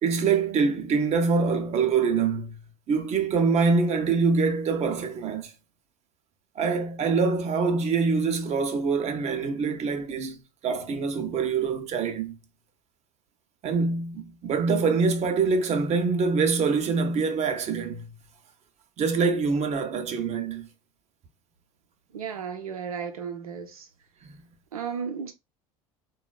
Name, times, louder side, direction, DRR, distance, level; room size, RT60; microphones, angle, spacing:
voice 1, 0.0-2.6 2.9-5.5 6.6-12.3 13.6-18.1 19.0-20.7 24.2-24.4, right 4 dB, 35° right, 0.7 m, -25 dB
voice 2, 22.1-23.9 24.7-25.3, right 6 dB, 80° right, 0.7 m, -34 dB
3.7 x 2.3 x 2.2 m
figure-of-eight pair, 70°, 18 cm